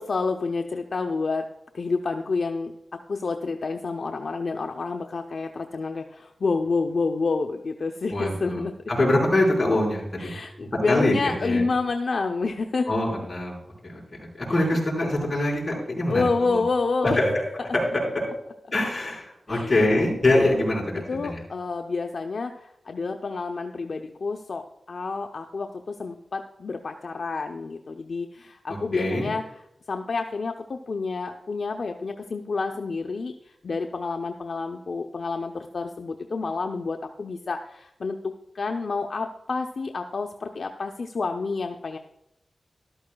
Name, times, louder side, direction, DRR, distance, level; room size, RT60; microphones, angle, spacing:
voice 1, 0.0-1.5 1.7-8.7 10.2-12.9 14.5-14.6 16.1-17.2 19.5-19.8 21.1-29.4 29.9-42.0, left 4 dB, 65° left, 4 dB, 0.6 m, -29 dB
voice 2, 8.1-8.6 8.9-10.4 10.8-11.6 12.9-14.0 14.4-16.2 16.5-16.6 17.0-17.3 17.7-18.0 18.7-20.8 21.1-21.4 28.9-29.3, left 1 dB, 30° left, -3 dB, 4.8 m, -24 dB
13.5 x 12.5 x 2.3 m, 0.81 s
wide cardioid pair, 95°, 0 cm